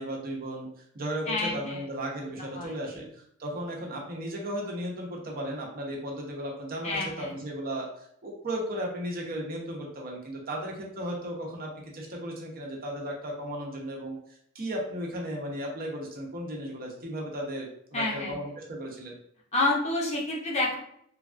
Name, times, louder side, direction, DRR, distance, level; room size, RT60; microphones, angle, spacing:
voice 1, 0.0-19.1, right 1 dB, 40° right, -1 dB, 0.7 m, -35 dB
voice 2, 1.3-1.8 2.5-3.0 6.8-7.4 17.9-18.4 19.5-20.7, left 2 dB, 30° left, -3 dB, 0.6 m, -29 dB
3.2 x 2.3 x 2.4 m, 0.69 s
head